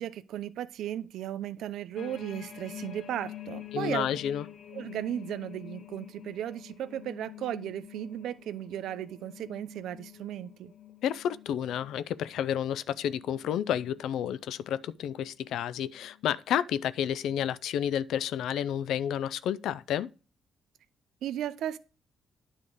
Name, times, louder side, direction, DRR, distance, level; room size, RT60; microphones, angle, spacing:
voice 1, 0.0-4.1 4.7-10.7 21.2-21.8, right 11 dB, 80° right, 0.5 m, -35 dB
sound 1, 2.0-14.3 14.8-15.1 15.5-16.2 16.9-17.0, left 12 dB, 60° left, 0.7 m, -47 dB
voice 2, 3.7-4.4 11.0-20.1, left 10 dB, 80° left, 0.4 m, -30 dB
9.8 x 3.6 x 6.4 m
cardioid pair, 90°, 0 cm